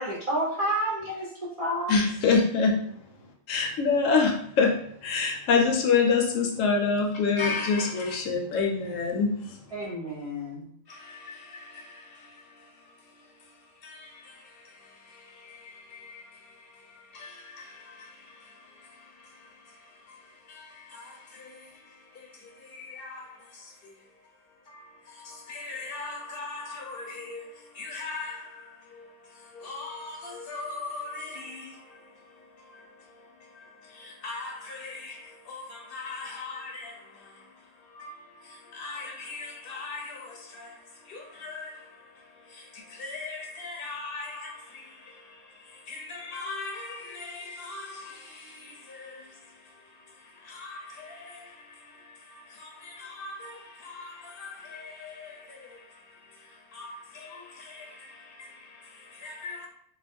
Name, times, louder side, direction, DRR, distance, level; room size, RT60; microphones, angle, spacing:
voice 1, 0.0-1.9 9.7-10.6, right 1 dB, 50° right, 0.4 m, -30 dB
voice 2, 1.9-2.7 3.5-4.8 5.0-9.6, left 5 dB, 80° left, 1.0 m, -24 dB
voice 3, 7.4-8.2 10.9-59.7, left 3 dB, 60° left, 0.7 m, -42 dB
2.4 x 2.1 x 3.3 m
omnidirectional pair, 1.3 m